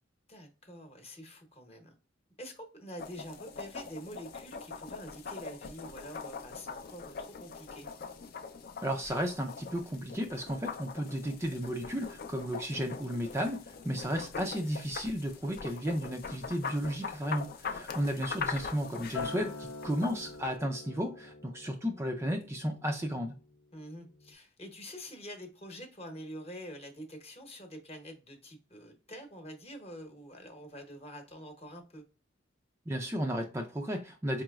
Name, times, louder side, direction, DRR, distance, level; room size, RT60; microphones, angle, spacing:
voice 1, 0.3-1.9 2.4-7.9 13.8-14.0 17.9-18.1 23.7-32.0, equal, 30° left, 0.9 m, -46 dB
sound 1, 3.0-20.6, left 5 dB, 50° left, 0.5 m, -42 dB
voice 2, 8.8-23.4 32.9-34.4, equal, 15° right, 0.3 m, -34 dB
Acoustic guitar, 19.1-23.6 23.9-24.3, left 4 dB, 85° left, 0.8 m, -45 dB
4.7 x 3.0 x 2.3 m
head